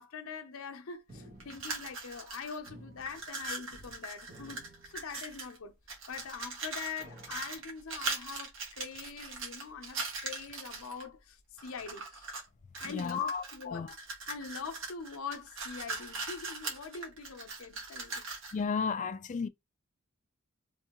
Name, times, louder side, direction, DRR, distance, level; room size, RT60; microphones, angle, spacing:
voice 1, 0.0-5.8 6.1-12.3 12.8-13.9 14.3-18.2, left 6 dB, 85° left, 0.7 m, -43 dB
sound 1, 1.1-2.3 2.7-4.0 4.2-5.5 6.1-6.2 7.0-7.8, right 1 dB, 45° right, 1.5 m, -54 dB
sound 2, 1.4-2.7 3.0-5.6 5.9-11.0 11.6-12.5 12.7-18.6, right 3 dB, 65° right, 1.4 m, -40 dB
voice 2, 12.8-13.9 18.5-19.5, left 5 dB, 35° left, 0.3 m, -33 dB
3.6 x 3.2 x 2.9 m
head